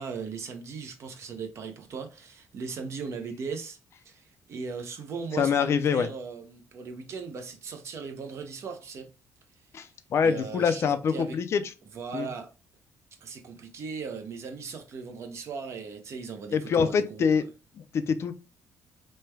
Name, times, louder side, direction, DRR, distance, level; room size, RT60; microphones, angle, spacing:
voice 1, 0.0-3.8 4.0-9.1 10.2-11.4 11.9-12.5 13.2-17.4, right 5 dB, 55° right, 0.7 m, -38 dB
voice 2, 5.3-6.1 9.7-11.6 12.1-12.3 16.5-17.5 17.9-18.3, left 6 dB, 50° left, 0.4 m, -25 dB
3.2 x 2.2 x 3.2 m
cardioid pair, 110°, 6 cm